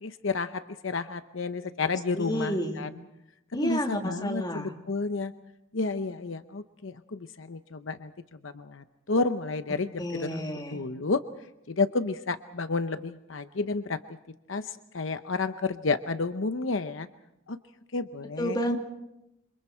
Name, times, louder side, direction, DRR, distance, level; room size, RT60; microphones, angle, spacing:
voice 1, 0.0-2.9 3.6-5.3 5.7-8.1 8.4-10.4 10.7-11.2 11.7-14.0 14.5-17.1 17.5-17.6 17.9-18.6, left 3 dB, 75° left, 10 dB, 0.8 m, -31 dB
voice 2, 2.2-2.8 3.5-4.7 10.0-10.8 18.4-18.8, equal, 20° left, 2 dB, 2.9 m, -30 dB
27.5 x 26.5 x 4.5 m, 0.87 s
head